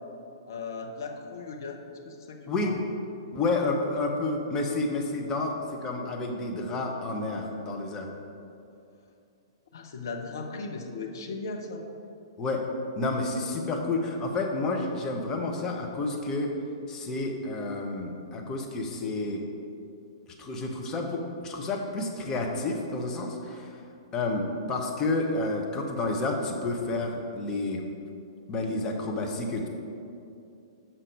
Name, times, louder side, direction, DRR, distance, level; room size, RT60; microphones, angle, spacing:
voice 1, 0.5-1.8 2.1-2.8 9.7-11.8, left 3 dB, 60° left, 3 dB, 0.9 m, -37 dB
voice 2, 3.3-8.1 12.4-12.7 13.0-16.5 16.9-19.4 20.4-23.8 24.1-27.8 28.5-29.7, left 2 dB, 20° left, 1 dB, 1.0 m, -30 dB
6.8 x 5.7 x 4.9 m, 2.6 s
figure-of-eight pair, 110°, 2 cm